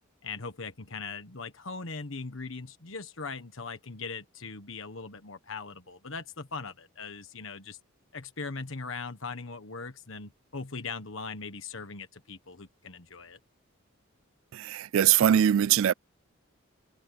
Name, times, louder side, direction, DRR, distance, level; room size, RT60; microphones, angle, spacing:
voice 1, 0.2-7.8 8.1-13.4, left 4 dB, 65° left, 1.4 m, -40 dB
voice 2, 14.5-15.9, right 10 dB, 70° right, 0.3 m, -22 dB
head